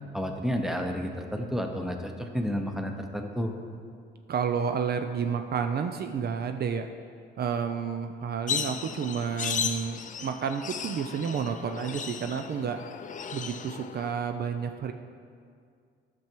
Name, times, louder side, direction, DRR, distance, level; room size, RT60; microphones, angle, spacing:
voice 1, 0.1-3.5, equal, ahead, 4 dB, 0.9 m, -31 dB
voice 2, 4.3-6.9 7.4-12.8 13.3-14.9, right 7 dB, 55° right, 7 dB, 0.5 m, -30 dB
sound 1, 8.5-14.1, left 7 dB, 40° left, 0.5 m, -35 dB
10.5 x 6.2 x 4.5 m, 2.2 s
cardioid pair, 90°, 20 cm